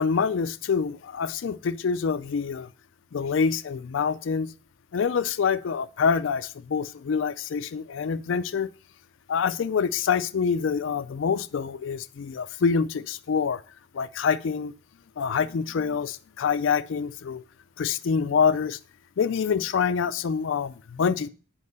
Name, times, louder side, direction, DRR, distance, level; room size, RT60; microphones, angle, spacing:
voice 1, 0.0-2.7 3.1-4.5 4.9-8.7 9.3-13.6 13.9-14.7 15.2-17.4 17.8-18.8 19.2-21.3, left 6 dB, 65° left, 12 dB, 0.4 m, -26 dB
8.5 x 5.3 x 5.4 m, 0.37 s
head